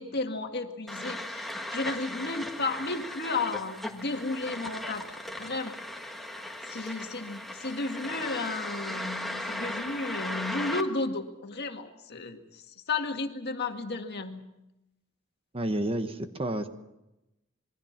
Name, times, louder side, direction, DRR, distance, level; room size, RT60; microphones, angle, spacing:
voice 1, 0.0-5.0 5.4-5.8 6.7-14.4, left 3 dB, 50° left, 5 dB, 1.9 m, -33 dB
sound 1, 0.9-10.8, left 1 dB, ahead, 1.6 m, -37 dB
voice 2, 15.5-16.7, right 1 dB, 25° right, 8 dB, 1.2 m, -30 dB
27.0 x 22.0 x 5.9 m, 0.93 s
head